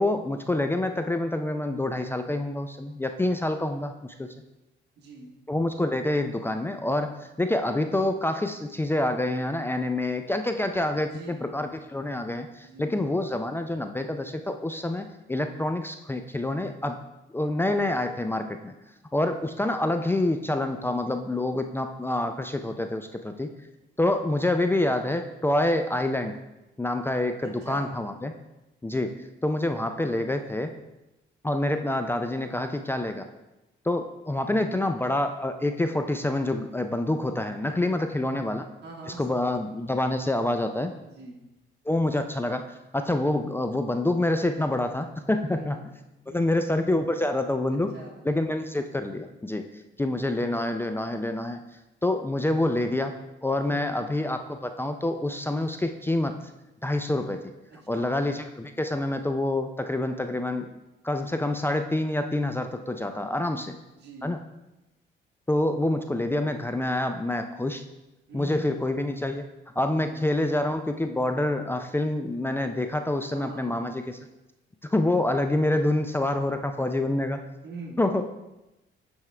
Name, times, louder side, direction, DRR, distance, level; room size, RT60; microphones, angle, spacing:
voice 1, 0.0-4.3 5.5-17.0 17.3-18.7 19.1-23.5 24.0-26.4 26.8-28.3 28.8-30.7 31.4-33.3 33.8-38.7 39.1-40.9 41.9-42.7 42.9-45.8 46.3-47.9 48.2-49.6 50.0-51.6 52.0-56.4 56.8-57.4 57.9-60.7 61.0-63.7 64.2-64.4 65.5-67.8 68.3-69.4 69.8-74.2 74.8-77.4 78.0-78.2, left 1 dB, 10° left, 6 dB, 0.4 m, -27 dB
voice 2, 5.0-5.3 11.0-11.5 12.6-12.9 27.4-27.9 37.7-38.0 38.8-39.8 41.0-41.4 45.5-45.8 46.3-46.6 47.7-48.1 53.7-53.9 57.7-58.1 63.4-63.7 64.0-64.4 68.3-68.6 70.0-70.2 73.3-73.7 77.6-78.0, right 2 dB, 60° right, -2 dB, 1.4 m, -43 dB
10.5 x 3.5 x 3.3 m, 0.97 s
cardioid pair, 90°, 20 cm